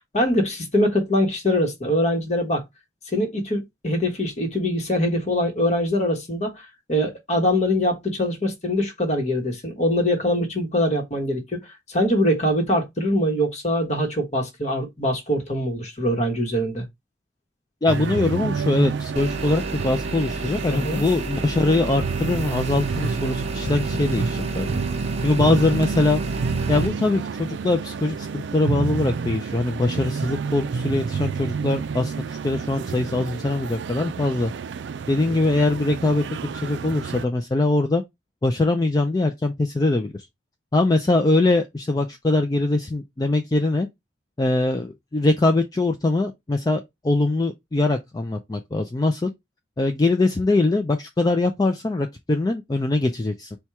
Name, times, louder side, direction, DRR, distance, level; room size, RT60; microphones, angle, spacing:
voice 1, 0.1-2.6 3.1-16.8 20.7-21.0, left 1 dB, 35° left, 1.1 m, -23 dB
voice 2, 17.8-24.8 25.2-26.2 26.7-34.5 35.1-38.0 38.4-40.3 40.7-43.9 44.4-49.3 49.8-53.6, left 2 dB, 20° left, 0.3 m, -22 dB
sound 1, 17.9-37.2, right 5 dB, 65° right, 0.4 m, -29 dB
sound 2, 19.2-26.9, right 3 dB, 35° right, 0.7 m, -31 dB
4.3 x 2.2 x 4.5 m
head